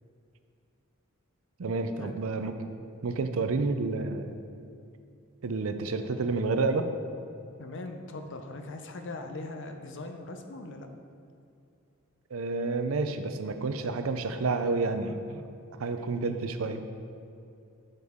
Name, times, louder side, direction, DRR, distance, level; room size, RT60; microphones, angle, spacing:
voice 1, 1.6-2.5 3.0-4.4 5.4-6.9 12.3-15.4 15.8-16.8, right 3 dB, 65° right, 8 dB, 0.5 m, -29 dB
voice 2, 7.6-10.9, left 2 dB, 60° left, 6 dB, 0.6 m, -40 dB
7.9 x 6.7 x 3.6 m, 2.6 s
head